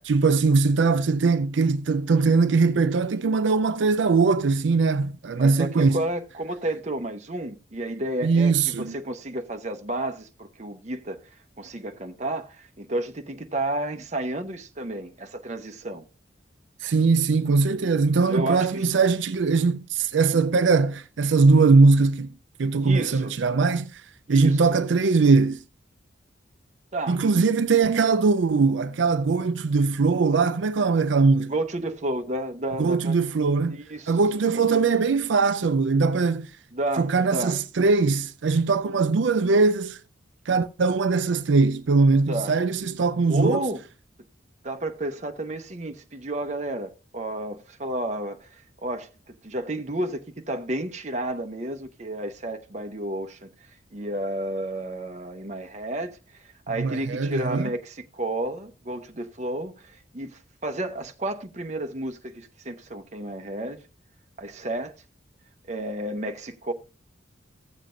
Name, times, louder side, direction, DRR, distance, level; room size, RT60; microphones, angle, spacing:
voice 1, 0.1-6.0 8.2-8.9 16.8-22.3 22.6-24.0 24.3-25.6 27.1-31.5 32.8-33.8 34.1-36.5 37.0-40.0 40.5-43.6 56.8-57.7, right 4 dB, 75° right, 0.5 m, -21 dB
voice 2, 5.4-16.0 18.3-18.9 22.8-23.3 24.3-24.6 26.9-27.2 31.4-33.1 33.7-34.2 34.5-34.6 36.7-37.6 42.3-42.6 43.3-43.8 44.6-53.5 53.9-63.8 64.4-64.9 65.7-66.7, right 1 dB, 40° right, 0.8 m, -31 dB
15.0 x 7.4 x 2.5 m
head